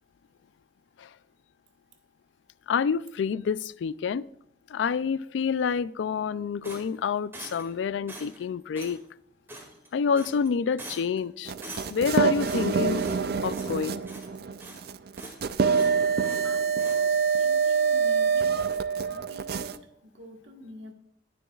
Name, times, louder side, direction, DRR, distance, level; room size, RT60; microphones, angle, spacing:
voice 1, 2.7-4.2 4.7-9.0 9.9-11.5 11.9-13.0 13.4-14.0, left 6 dB, 75° left, 0.3 m, -28 dB
sound 1, 6.6-7.8 8.1-8.4 8.8-9.0 9.5-9.9 10.2-10.5 10.8-11.2 11.6-12.1 12.4-13.3 13.5-13.8 14.1-14.9 15.2-15.4 15.7-16.5 16.8-17.0, right 1 dB, 15° right, 2.0 m, -44 dB
sound 2, 11.5-19.8, right 5 dB, 55° right, 0.4 m, -26 dB
voice 2, 16.4-18.7 19.1-20.9, equal, 75° right, 1.5 m, -47 dB
19.5 x 7.0 x 2.4 m
head